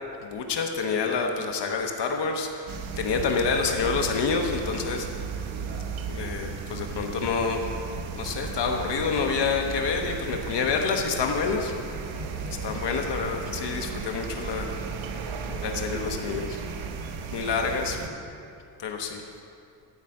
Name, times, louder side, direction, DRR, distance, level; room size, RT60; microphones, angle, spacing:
voice 1, 0.2-5.1 6.1-7.7 8.1-11.7 12.6-14.8 15.6-16.5 17.3-18.0 18.8-19.3, left 5 dB, 60° left, 3 dB, 1.1 m, -28 dB
sound 1, 2.7-18.1, right 5 dB, 75° right, 1.0 m, -35 dB
voice 2, 5.4-6.1 10.2-10.7 11.6-12.8 15.5-16.7 17.5-18.4, equal, 25° right, -4 dB, 2.7 m, -42 dB
13.5 x 5.7 x 7.8 m, 2.4 s
cardioid pair, 130°, 47 cm